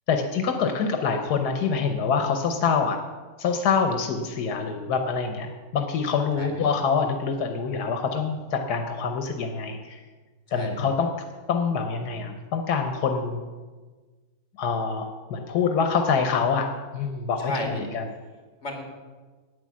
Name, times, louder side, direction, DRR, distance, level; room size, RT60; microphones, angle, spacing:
voice 1, 0.1-3.0 3.4-10.0 10.5-11.1 11.5-13.4 14.6-17.5 17.9-18.0, left 5 dB, 85° left, 5 dB, 1.5 m, -25 dB
voice 2, 10.5-10.9 17.4-17.9 18.6-18.8, left 1 dB, 45° left, 2 dB, 2.6 m, -33 dB
10.0 x 9.3 x 7.4 m, 1.4 s
omnidirectional pair, 1.7 m